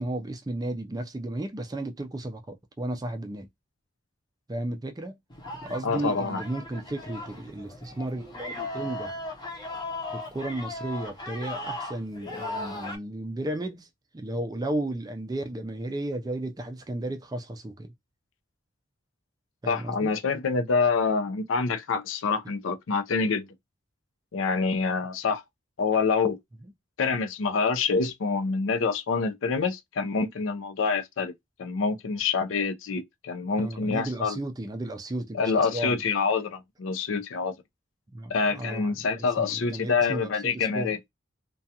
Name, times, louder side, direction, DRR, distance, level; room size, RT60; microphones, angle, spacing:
voice 1, 0.0-3.5 4.5-5.2 5.6-9.2 10.1-13.9 14.1-17.9 19.6-20.1 26.6-26.7 33.6-36.0 38.1-39.0 39.4-41.0, right 1 dB, 20° right, 0.3 m, -34 dB
sound 1, 5.3-13.0, left 2 dB, 20° left, 0.6 m, -37 dB
voice 2, 5.8-6.4 19.7-23.5 24.3-25.4 25.8-26.4 27.0-31.3 31.6-34.4 35.3-37.5 38.3-41.0, left 4 dB, 80° left, 0.5 m, -26 dB
2.4 x 2.3 x 2.7 m
head